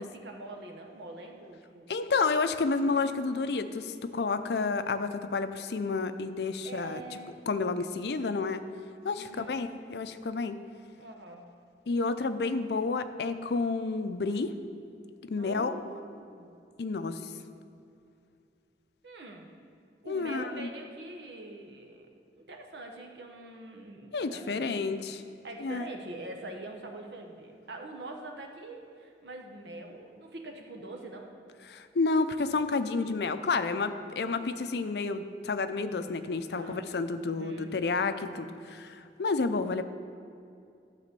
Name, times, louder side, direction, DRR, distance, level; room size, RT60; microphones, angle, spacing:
voice 1, 0.0-1.9 6.6-7.4 9.2-9.6 11.0-11.5 15.4-16.5 19.0-19.5 20.0-22.1 22.4-24.9 25.4-31.3 36.6-36.9 37.3-37.7, right 2 dB, 85° right, 2 dB, 1.1 m, -44 dB
voice 2, 1.9-7.0 7.5-8.6 9.0-10.6 11.9-14.5 15.2-15.8 16.8-17.3 20.1-20.7 24.1-25.2 25.6-25.8 31.7-39.8, left 4 dB, 70° left, 10 dB, 0.5 m, -30 dB
12.5 x 4.2 x 6.8 m, 2.5 s
head